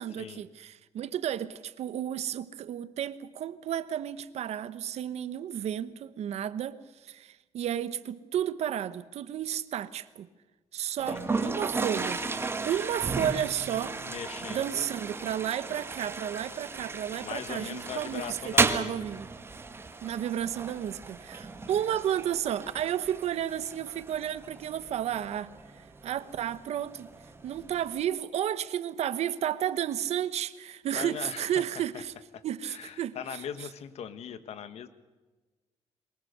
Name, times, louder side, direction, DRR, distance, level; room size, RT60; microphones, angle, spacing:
voice 1, 0.0-10.3 10.7-12.2 12.6-14.0 14.5-19.3 20.0-27.1 27.4-32.1 32.4-33.2, right 10 dB, 65° right, 1.1 m, -32 dB
voice 2, 11.0-11.6 14.1-14.9 17.2-18.9 30.9-32.0 32.3-34.9, left 8 dB, 65° left, 1.5 m, -40 dB
Toilet flush, 11.0-28.0, right 3 dB, 20° right, 1.7 m, -35 dB
22.5 x 20.5 x 6.7 m
cardioid pair, 140°, 12 cm